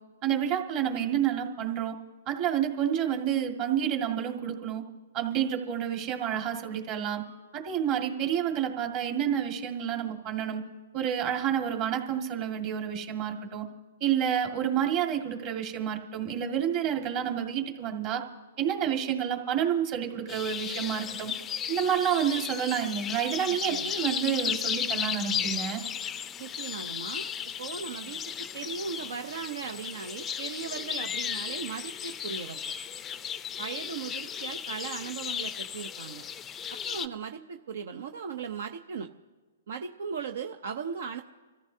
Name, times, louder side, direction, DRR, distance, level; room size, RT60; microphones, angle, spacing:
voice 1, 0.2-2.0 2.3-4.8 5.1-7.2 7.5-10.6 10.9-13.7 14.0-18.2 18.6-21.3 21.7-25.8, right 9 dB, 35° right, 3 dB, 1.9 m, -29 dB
sound 1, 20.3-37.1, left 8 dB, 15° left, 0.4 m, -35 dB
voice 2, 26.4-27.3 27.6-32.6 33.6-36.2 36.7-39.1 39.7-41.2, right 6 dB, 70° right, 7 dB, 0.7 m, -37 dB
26.0 x 14.0 x 2.8 m, 1.3 s
hypercardioid pair, 140°, 0 cm